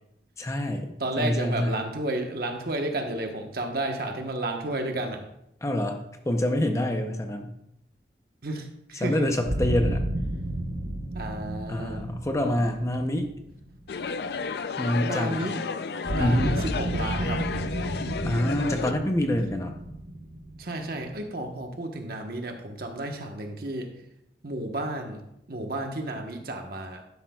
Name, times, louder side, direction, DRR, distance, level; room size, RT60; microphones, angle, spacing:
voice 1, 0.4-0.9 1.2-1.8 5.6-6.0 6.3-7.5 9.0-10.1 11.7-13.3 14.8-15.4 16.2-16.6 18.2-19.8, left 1 dB, 15° left, 5 dB, 0.7 m, -26 dB
voice 2, 1.0-5.2 8.4-9.3 11.1-12.0 15.0-15.6 16.1-17.4 20.6-23.9 24.4-25.2 25.5-27.0, right 1 dB, 55° right, 3 dB, 1.2 m, -32 dB
sound 1, 9.5-14.4 16.1-21.7, right 1 dB, 75° right, 1.2 m, -32 dB
sound 2, 13.9-18.9, left 5 dB, 65° left, 0.4 m, -32 dB
11.5 x 10.5 x 2.3 m, 0.80 s
head